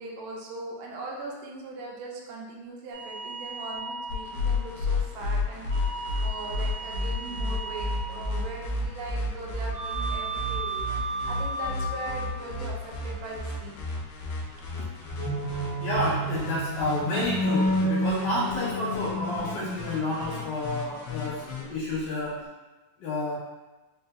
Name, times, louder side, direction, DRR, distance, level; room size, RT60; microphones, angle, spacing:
voice 1, 0.0-10.8 11.3-13.8 14.8-14.9, right 2 dB, 80° right, -2 dB, 2.1 m, -40 dB
sound 1, 2.9-4.7 5.7-8.5 9.7-12.5 15.0-20.0 21.6-22.5, right 1 dB, 40° right, 1.8 m, -32 dB
sound 2, 4.1-21.6, left 2 dB, 90° left, 1.4 m, -33 dB
voice 2, 15.8-22.4 23.0-23.4, left 2 dB, 70° left, -9 dB, 2.2 m, -30 dB
5.3 x 2.6 x 2.3 m, 1.1 s
omnidirectional pair, 3.7 m